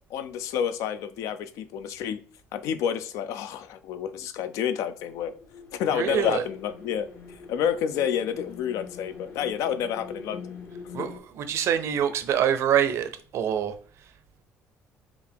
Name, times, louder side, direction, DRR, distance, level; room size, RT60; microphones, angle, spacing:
voice 1, 0.1-2.2 2.5-5.3 5.7-10.6 11.0-11.1, left 8 dB, 80° left, 0.4 m, -29 dB
Haunting mask, 5.0-11.2, left 5 dB, 55° left, 1.2 m, -44 dB
voice 2, 5.9-6.4 10.9-13.7, right 9 dB, 55° right, 0.5 m, -25 dB
4.7 x 2.4 x 3.4 m
cardioid pair, 145°, 5 cm